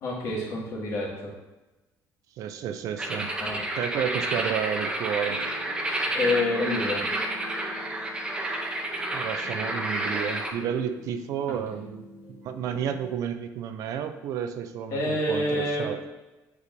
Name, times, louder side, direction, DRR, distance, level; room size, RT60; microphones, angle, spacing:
voice 1, 0.0-1.3 3.4-3.6 5.9-7.0 11.5-11.6 14.9-15.9, left 2 dB, 55° left, -4 dB, 2.1 m, -28 dB
voice 2, 2.4-3.3 3.8-5.4 9.1-16.0, right 8 dB, 60° right, 8 dB, 0.5 m, -31 dB
sound 1, 3.0-10.5, right 1 dB, 15° right, 0.7 m, -30 dB
sound 2, 5.3-13.1, left 3 dB, 80° left, 1.4 m, -46 dB
8.2 x 4.8 x 2.7 m, 1.1 s
cardioid pair, 140°, 6 cm